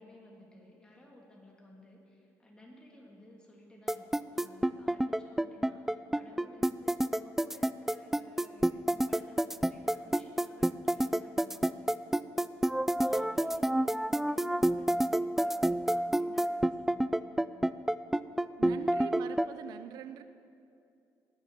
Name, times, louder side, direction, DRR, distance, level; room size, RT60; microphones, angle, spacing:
voice 1, 0.0-17.4, left 1 dB, 15° left, -1 dB, 3.1 m, -56 dB
sound 1, 3.9-19.5, right 1 dB, 5° right, 0.3 m, -28 dB
voice 2, 13.1-13.6 18.6-20.2, right 10 dB, 90° right, 11 dB, 0.7 m, -44 dB
20.0 x 7.4 x 6.8 m, 2.5 s
cardioid pair, 105°, 7 cm